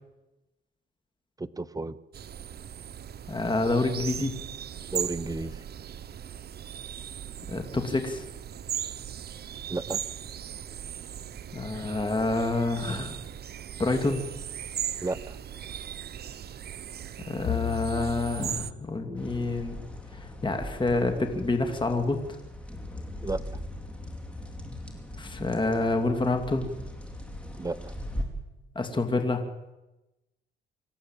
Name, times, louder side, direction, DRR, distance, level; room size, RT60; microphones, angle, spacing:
voice 1, 1.4-2.0 4.9-5.6 9.7-10.0 15.0-15.4 23.2-23.4 27.6-27.9, right 2 dB, 20° right, 15 dB, 0.9 m, -32 dB
sound 1, 2.1-18.7, right 9 dB, 55° right, 1.0 m, -38 dB
voice 2, 3.3-4.4 7.5-8.3 11.5-13.2 13.8-14.2 17.3-19.8 20.1-22.2 25.2-26.7 28.7-29.4, left 2 dB, 25° left, 6 dB, 2.7 m, -27 dB
Bowed string instrument, 17.4-21.8, left 13 dB, 55° left, 1.2 m, -38 dB
sound 2, 19.2-28.2, left 1 dB, 5° left, 4.8 m, -40 dB
26.5 x 14.5 x 9.1 m, 1.0 s
cardioid pair, 90°, 20 cm